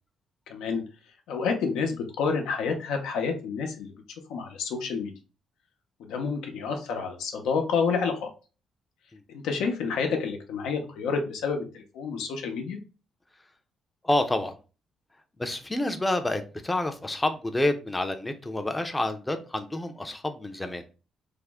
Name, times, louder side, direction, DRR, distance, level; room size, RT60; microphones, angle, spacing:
voice 1, 0.5-0.8 1.3-3.9 4.3-5.1 6.0-8.3 9.3-12.8, left 5 dB, 90° left, 0.7 m, -29 dB
voice 2, 14.0-14.6 15.4-20.8, left 1 dB, 15° left, 0.5 m, -28 dB
3.4 x 2.0 x 3.4 m
cardioid pair, 90°, 0 cm